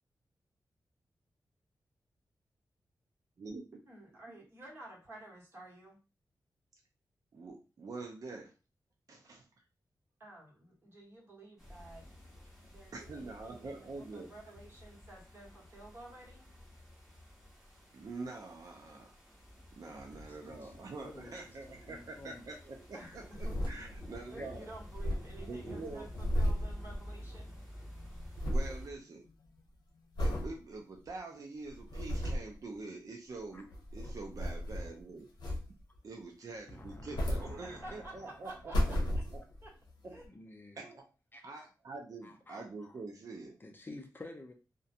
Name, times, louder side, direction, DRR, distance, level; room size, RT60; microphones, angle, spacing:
voice 1, 3.9-6.0 10.2-12.1 12.7-16.5 22.9-23.6 23.9-24.0 24.3-27.6 37.4-39.2 39.6-39.7 40.1-40.2, right 2 dB, 35° right, 1.2 m, -52 dB
voice 2, 7.3-8.5 9.1-9.5 12.9-14.3 17.9-19.1 19.8-24.7 25.5-26.1 28.4-29.2 30.2-35.3 36.0-39.0 39.3-39.4 40.0-40.2 40.8-41.1 41.4-43.6, right 3 dB, 55° right, 0.5 m, -45 dB
sound 1, 11.6-28.9, left 1 dB, 5° right, 1.1 m, -51 dB
voice 3, 20.1-22.4 24.4-24.5 33.5-33.6 36.7-38.4 40.3-40.9 41.3-41.7 42.2-43.0 43.6-44.5, left 2 dB, 30° left, 0.5 m, -51 dB
sound 2, 23.1-24.2 24.5-24.6 24.8-27.6 27.8-28.8 29.3-29.6 30.2-30.5 31.1-31.2 31.7-32.5 33.5-35.0 35.4-36.0 36.8-38.1 38.5-39.7 40.2-40.3, equal, 90° left, 0.8 m, -34 dB
2.4 x 2.2 x 2.7 m
wide cardioid pair, 95°, 7 cm